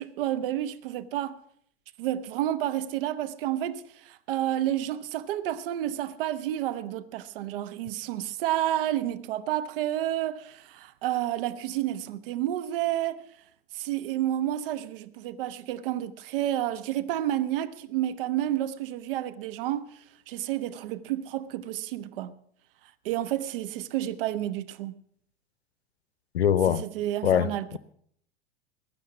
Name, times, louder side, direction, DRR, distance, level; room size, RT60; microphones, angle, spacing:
voice 1, 0.0-1.4 2.0-13.2 13.7-20.0 20.3-22.4 23.0-24.9 26.7-27.8, right 12 dB, 60° right, 0.8 m, -30 dB
voice 2, 26.3-26.9 27.2-27.8, left 9 dB, 80° left, 0.6 m, -23 dB
15.5 x 10.5 x 6.0 m
figure-of-eight pair, 85°, 32 cm